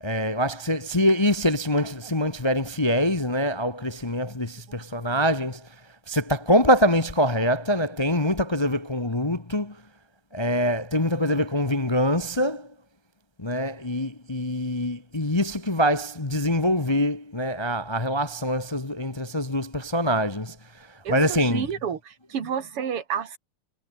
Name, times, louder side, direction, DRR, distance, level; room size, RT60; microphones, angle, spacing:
voice 1, 0.0-5.6 6.1-9.8 10.3-12.7 13.4-20.6 21.1-21.7, equal, 20° left, 0.7 m, -24 dB
voice 2, 21.0-23.4, right 7 dB, 90° right, 3.0 m, -30 dB
omnidirectional pair, 2.4 m